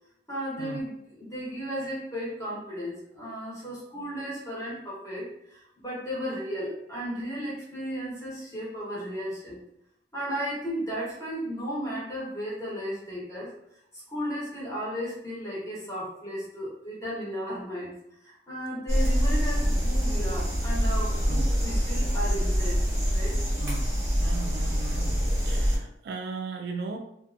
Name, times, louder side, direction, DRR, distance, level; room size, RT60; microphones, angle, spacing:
voice 1, 0.3-9.6 10.1-13.5 14.1-22.8 23.1-23.4, equal, 20° left, -7 dB, 1.1 m, -35 dB
sound 1, 18.9-25.8, equal, 15° right, 1.1 m, -25 dB
voice 2, 23.6-23.9 24.2-27.0, right 4 dB, 60° right, 3 dB, 0.3 m, -37 dB
2.7 x 2.4 x 2.4 m, 0.78 s
head